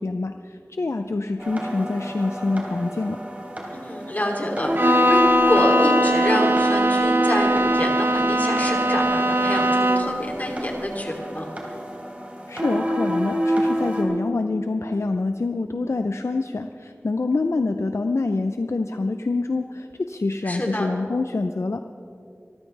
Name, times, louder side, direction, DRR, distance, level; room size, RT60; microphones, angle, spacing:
voice 1, 0.0-3.2 12.5-21.8, left 3 dB, 70° left, 7 dB, 0.5 m, -26 dB
sound 1, 1.4-14.0, equal, 30° right, 3.6 m, -28 dB
voice 2, 3.7-5.2 5.5-11.5 20.4-21.0, equal, 35° left, 0 dB, 2.9 m, -27 dB
Bowed string instrument, 4.7-10.3, right 1 dB, 50° right, 0.9 m, -20 dB
25.5 x 13.5 x 3.3 m, 2.5 s
wide cardioid pair, 45°, 5 cm